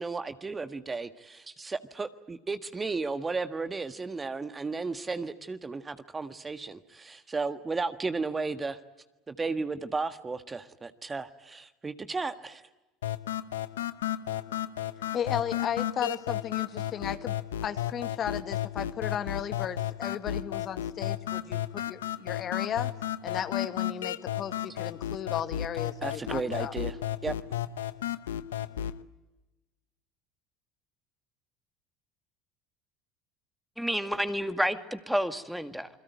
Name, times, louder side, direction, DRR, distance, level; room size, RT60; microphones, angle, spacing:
voice 1, 0.0-8.8 9.3-12.6 26.0-27.0 27.2-27.3, right 4 dB, 20° right, 10 dB, 1.6 m, -34 dB
sound 1, 13.0-29.0, left 11 dB, 85° left, 0.9 m, -33 dB
voice 2, 15.1-17.3 17.6-22.9 23.2-26.7, left 9 dB, 45° left, 10 dB, 1.9 m, -35 dB
voice 3, 33.8-35.9, equal, 5° right, 9 dB, 2.2 m, -30 dB
28.0 x 22.0 x 9.5 m, 1.0 s
hypercardioid pair, 80°, 0 cm